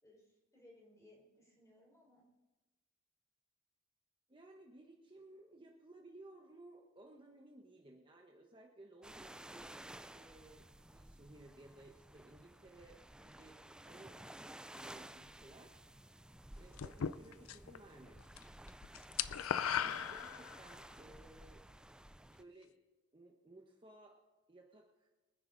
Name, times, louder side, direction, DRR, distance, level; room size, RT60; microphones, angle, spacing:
voice 1, 0.0-2.2, left 1 dB, 15° left, -3 dB, 4.7 m, -64 dB
voice 2, 4.3-9.7 10.1-14.2 14.7-15.8 16.6-18.2 19.8-21.6 22.2-22.8 23.1-24.2 24.5-25.1, right 2 dB, 25° right, 0 dB, 1.1 m, -58 dB
sound 1, 9.0-22.4, right 1 dB, 5° right, 0.4 m, -54 dB
sound 2, 16.8-17.8 18.1-18.4 18.7-20.8, left 8 dB, 75° left, 0.5 m, -37 dB
23.5 x 10.0 x 3.9 m, 1.1 s
head